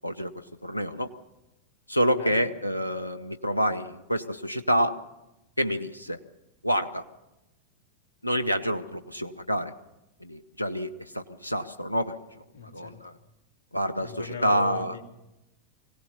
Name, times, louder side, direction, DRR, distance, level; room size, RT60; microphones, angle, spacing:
voice 1, 0.6-1.1 1.9-5.0 5.6-6.2 6.6-7.0 8.2-9.7 10.2-12.2 12.7-13.1 13.7-14.9, equal, 85° left, 11 dB, 0.8 m, -27 dB
voice 2, 12.5-13.0 14.0-15.0, left 3 dB, 60° left, 1 dB, 3.1 m, -39 dB
23.0 x 17.0 x 7.0 m, 0.95 s
figure-of-eight pair, 90°, 0 cm